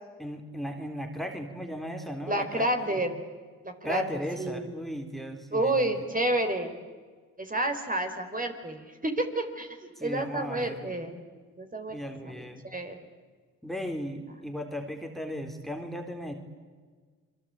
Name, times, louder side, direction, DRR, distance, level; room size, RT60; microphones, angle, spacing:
voice 1, 0.2-3.0 3.8-6.1 10.0-11.0 11.9-12.7 13.6-16.3, equal, ahead, 4 dB, 3.7 m, -36 dB
voice 2, 2.3-3.1 3.6-4.0 4.4-4.7 5.5-6.7 7.4-11.2 11.6-12.0 12.3-13.0, right 1 dB, 25° right, 5 dB, 4.2 m, -30 dB
29.0 x 22.5 x 8.9 m, 1.5 s
supercardioid pair, 50°, 33 cm